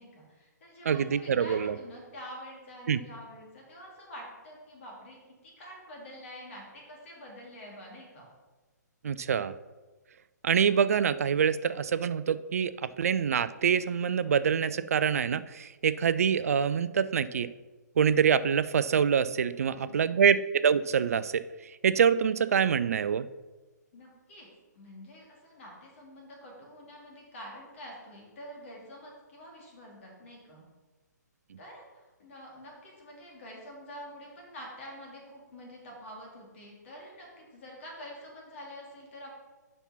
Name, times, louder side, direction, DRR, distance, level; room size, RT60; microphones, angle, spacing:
voice 1, 0.0-8.3 19.6-20.2 23.9-24.5 24.7-30.6 31.6-39.3, equal, 45° left, -2 dB, 3.0 m, -47 dB
voice 2, 0.9-1.8 2.9-3.0 9.0-9.5 10.4-17.5 18.0-23.3, right 7 dB, 55° right, 15 dB, 0.4 m, -25 dB
7.1 x 5.5 x 5.7 m, 1.2 s
figure-of-eight pair, 130°, 10 cm